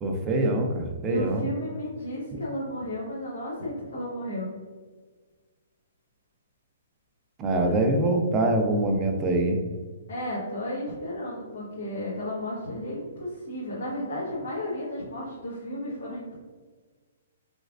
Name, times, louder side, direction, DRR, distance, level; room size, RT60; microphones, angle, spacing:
voice 1, 0.0-1.4 2.3-2.4 7.4-9.6, right 2 dB, 15° right, 2 dB, 0.4 m, -24 dB
voice 2, 1.0-4.5 7.5-7.7 10.1-16.3, left 1 dB, 85° left, -8 dB, 1.3 m, -33 dB
3.2 x 3.1 x 2.5 m, 1.4 s
hypercardioid pair, 160°, 0 cm